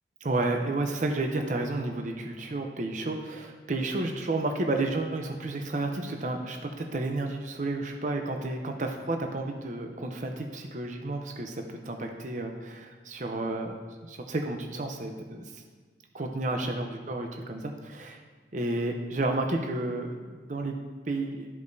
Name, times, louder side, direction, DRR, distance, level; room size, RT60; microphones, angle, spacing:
voice 1, 0.2-15.6 16.1-18.2 18.5-20.7 21.1-21.5, right 2 dB, 40° right, 3 dB, 0.6 m, -31 dB
13.0 x 5.1 x 2.7 m, 1.5 s
head